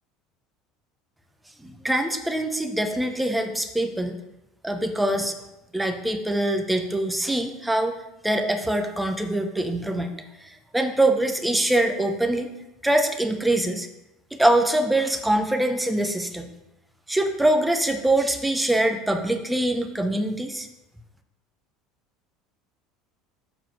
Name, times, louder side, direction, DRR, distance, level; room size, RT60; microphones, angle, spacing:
voice 1, 1.6-4.2 4.6-5.3 5.7-8.0 8.2-12.5 12.8-13.9 14.4-16.5 17.1-20.7, right 1 dB, 5° right, 5 dB, 1.1 m, -24 dB
7.5 x 4.6 x 6.1 m, 0.93 s
figure-of-eight pair, 70°, 0 cm